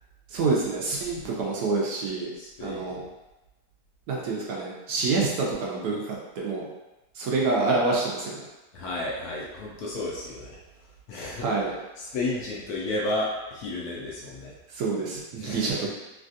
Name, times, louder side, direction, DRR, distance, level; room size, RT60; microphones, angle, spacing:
voice 1, 0.3-2.3 2.6-3.0 4.1-6.7 7.2-8.5 11.4-11.7 14.7-15.9, right 3 dB, 70° right, -3 dB, 1.0 m, -27 dB
voice 2, 2.4-3.0 8.7-10.6 11.1-11.6 12.0-14.5 15.4-15.9, left 2 dB, 70° left, -4 dB, 1.0 m, -32 dB
3.2 x 2.3 x 2.5 m, 1.0 s
omnidirectional pair, 1.9 m